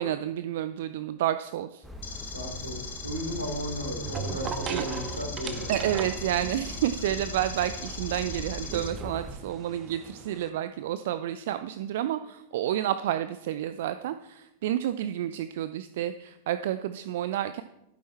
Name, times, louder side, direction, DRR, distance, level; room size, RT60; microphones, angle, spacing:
voice 1, 0.0-1.9 4.7-4.9 5.7-17.6, right 11 dB, 55° right, 12 dB, 0.5 m, -30 dB
sound 1, 1.8-9.4, left 1 dB, 5° right, 1.4 m, -41 dB
sound 2, 1.9-10.5, right 7 dB, 30° right, 1.0 m, -40 dB
sound 3, 2.0-8.9, left 5 dB, 65° left, 1.5 m, -41 dB
voice 2, 2.3-5.9, equal, 80° right, 1 dB, 3.4 m, -35 dB
12.0 x 10.0 x 4.3 m, 0.87 s
figure-of-eight pair, 90°, 0 cm